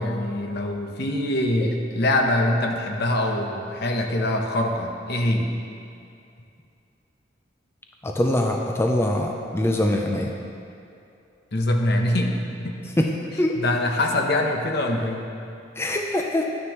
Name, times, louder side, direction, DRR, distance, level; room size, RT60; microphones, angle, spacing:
voice 1, 0.0-5.5 11.5-13.0 13.5-15.3, left 1 dB, 60° left, 2 dB, 0.9 m, -24 dB
voice 2, 8.0-10.3 13.0-13.6 15.8-16.5, left 1 dB, 15° left, 1 dB, 0.5 m, -23 dB
11.5 x 9.6 x 3.0 m, 2.6 s
head